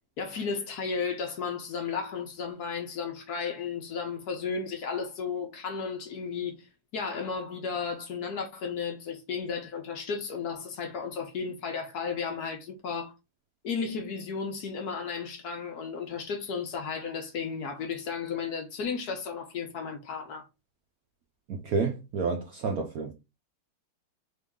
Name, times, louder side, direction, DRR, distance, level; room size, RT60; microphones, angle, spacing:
voice 1, 0.2-13.1 13.6-20.5, left 5 dB, 60° left, 1.0 m, -34 dB
voice 2, 21.5-23.1, right 4 dB, 85° right, 0.8 m, -30 dB
3.8 x 3.1 x 3.5 m
omnidirectional pair, 2.3 m